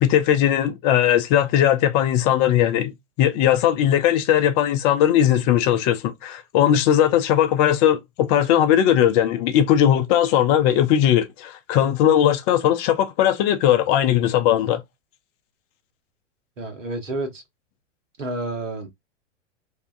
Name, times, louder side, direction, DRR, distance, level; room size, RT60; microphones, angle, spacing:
voice 1, 0.0-2.9 3.2-14.8, left 10 dB, 35° left, 0.5 m, -19 dB
voice 2, 16.6-17.4 18.2-18.9, right 2 dB, 90° right, 1.1 m, -29 dB
2.7 x 2.3 x 2.4 m
hypercardioid pair, 110°, 36 cm